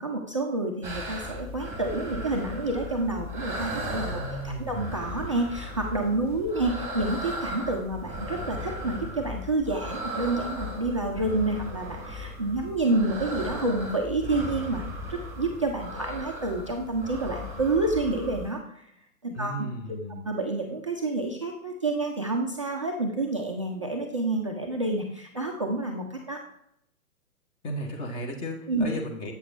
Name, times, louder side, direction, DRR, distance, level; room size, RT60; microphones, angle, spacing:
voice 1, 0.0-4.2 4.4-18.8 19.2-19.7 20.2-26.4 28.7-28.9, right 2 dB, 25° right, -1 dB, 0.4 m, -29 dB
sound 1, 0.8-18.5, left 1 dB, 5° right, 1.4 m, -36 dB
voice 2, 4.0-4.8 19.3-20.2 27.6-29.3, equal, 10° left, 2 dB, 0.7 m, -35 dB
7.9 x 6.4 x 3.1 m, 0.76 s
figure-of-eight pair, 125°, 43 cm